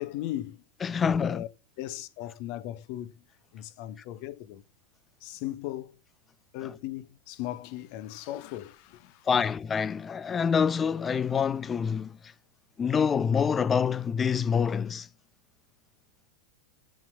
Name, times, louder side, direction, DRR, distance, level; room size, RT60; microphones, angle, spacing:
voice 1, 0.0-0.6 1.0-1.5 1.8-3.1 3.5-4.6 5.2-6.0 6.5-9.3, left 14 dB, 45° left, 0.9 m, -37 dB
voice 2, 0.8-1.4 6.6-6.7 9.3-12.3 12.8-15.1, left 6 dB, 20° left, 0.4 m, -26 dB
13.5 x 4.6 x 5.8 m
figure-of-eight pair, 90°, 0 cm